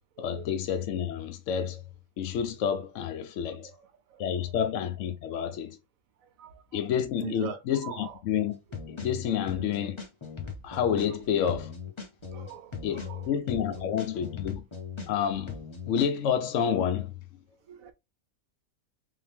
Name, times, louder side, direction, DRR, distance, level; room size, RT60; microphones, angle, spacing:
voice 1, 0.2-1.8 2.2-3.7 4.2-5.8 6.7-8.6 8.9-10.0 10.6-11.7 12.8-14.6 15.1-15.6 15.8-17.1, left 8 dB, 65° left, 0.9 m, -29 dB
voice 2, 4.1-4.5 6.4-6.9 7.2-8.2 12.3-13.8 17.7-17.9, right 9 dB, 75° right, 1.1 m, -42 dB
sound 1, 8.7-11.1 11.5-15.1 15.5-16.1, left 6 dB, 30° left, 0.5 m, -38 dB
3.5 x 2.7 x 3.4 m
omnidirectional pair, 1.5 m